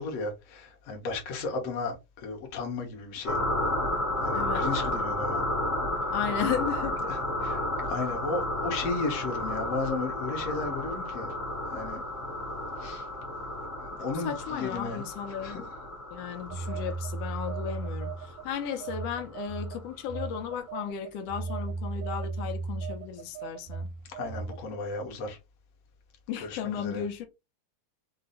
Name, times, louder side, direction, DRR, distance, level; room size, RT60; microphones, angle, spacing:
voice 1, 0.0-3.4 4.2-5.4 7.0-11.3 11.7-12.0 12.8-13.1 13.9-15.7 24.2-25.4 26.4-27.0, left 3 dB, 60° left, 2.1 m, -34 dB
sound 1, 3.2-19.5, left 1 dB, 40° left, 1.1 m, -32 dB
voice 2, 4.3-4.6 6.1-7.0 14.2-15.6 16.1-18.1 18.4-23.9 26.3-27.3, left 9 dB, 75° left, 1.4 m, -34 dB
Telephone, 16.5-18.4 18.8-24.7, right 4 dB, 85° right, 2.1 m, -36 dB
5.9 x 2.2 x 3.9 m
omnidirectional pair, 3.6 m